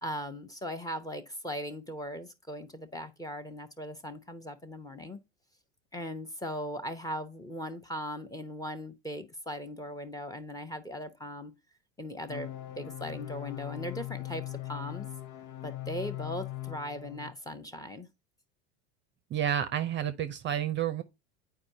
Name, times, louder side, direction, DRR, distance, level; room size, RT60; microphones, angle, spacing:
voice 1, 0.0-5.2 5.9-11.5 12.0-12.5 12.8-15.1 15.6-18.1, equal, 10° left, 0.8 m, -39 dB
sound 1, 12.3-17.3, left 15 dB, 80° left, 0.9 m, -40 dB
voice 2, 19.3-21.0, right 9 dB, 30° right, 0.6 m, -30 dB
8.7 x 4.6 x 2.7 m
hypercardioid pair, 105°, 36 cm